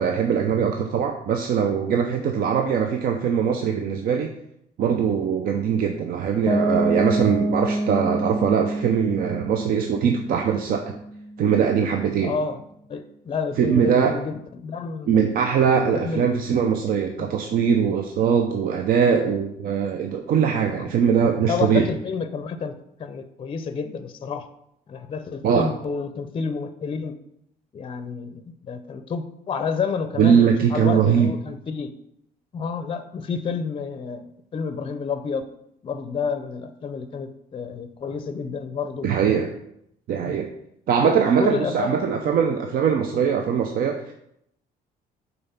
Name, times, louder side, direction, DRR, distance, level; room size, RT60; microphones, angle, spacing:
voice 1, 0.0-4.3 4.8-10.9 11.4-12.3 13.6-14.1 15.1-21.9 25.4-25.7 30.2-31.3 39.0-39.5 40.1-40.5 40.9-44.1, right 7 dB, 60° right, 4 dB, 0.6 m, -21 dB
Piano, 6.5-12.2, right 1 dB, ahead, 0.9 m, -27 dB
voice 2, 12.2-12.6 12.9-15.1 16.0-16.4 20.8-20.9 21.4-24.5 24.9-27.2 27.7-31.9 32.5-35.5 35.8-39.1 40.2-40.4 41.0-41.1 41.4-42.4, left 5 dB, 30° left, 10 dB, 0.5 m, -30 dB
5.5 x 4.0 x 5.6 m, 0.76 s
cardioid pair, 110°, 17 cm